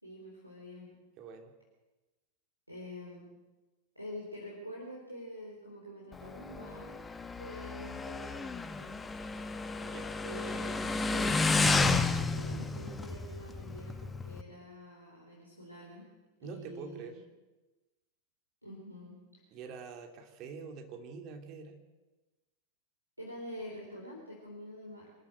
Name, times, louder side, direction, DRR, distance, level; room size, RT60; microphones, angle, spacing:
voice 1, 0.0-1.0 2.7-3.3 3.9-7.0 7.4-9.0 10.2-16.1 16.4-17.2 18.6-19.2 23.2-25.1, left 1 dB, 90° right, -2 dB, 4.1 m, -46 dB
voice 2, 1.2-1.5 9.7-10.2 16.4-17.2 19.5-21.8, right 5 dB, 35° right, 4 dB, 3.2 m, -45 dB
Motorcycle, 6.1-14.4, left 3 dB, 15° left, 1.1 m, -32 dB
25.0 x 14.0 x 8.0 m, 1.1 s
figure-of-eight pair, 90°, 0 cm